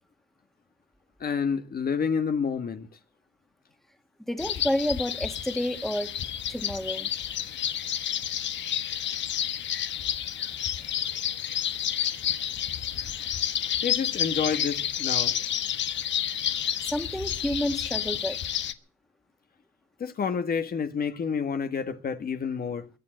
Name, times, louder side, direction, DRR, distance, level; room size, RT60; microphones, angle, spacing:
voice 1, 1.2-2.9 13.8-15.4 20.0-22.9, left 6 dB, 50° left, 1.6 m, -29 dB
voice 2, 4.3-6.1 6.5-7.1 16.9-18.4, equal, ahead, 2.0 m, -29 dB
sound 1, 4.4-18.7, left 10 dB, 65° left, 1.3 m, -30 dB
22.0 x 7.7 x 7.8 m
cardioid pair, 90°, 20 cm